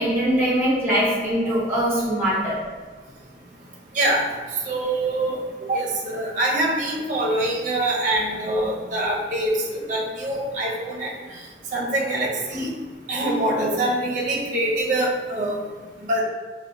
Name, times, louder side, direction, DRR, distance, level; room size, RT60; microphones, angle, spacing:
voice 1, 0.0-2.6, equal, 10° right, -8 dB, 1.0 m, -22 dB
voice 2, 4.6-11.4 11.7-12.7 13.1-15.6 16.0-16.2, right 1 dB, 45° right, -3 dB, 0.6 m, -24 dB
4.2 x 2.1 x 2.5 m, 1.4 s
head